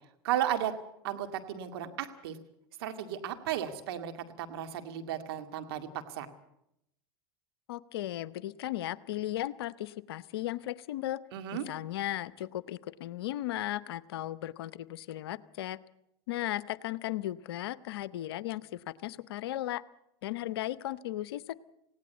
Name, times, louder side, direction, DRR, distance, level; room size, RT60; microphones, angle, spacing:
voice 1, 0.2-0.7 1.0-2.4 2.8-6.3 11.3-11.7, right 11 dB, 70° right, 7 dB, 2.2 m, -34 dB
voice 2, 7.7-11.2 11.7-15.8 16.3-19.8 20.2-21.6, left 14 dB, 75° left, 18 dB, 0.8 m, -36 dB
19.0 x 17.0 x 8.2 m, 0.81 s
hypercardioid pair, 90°, 13 cm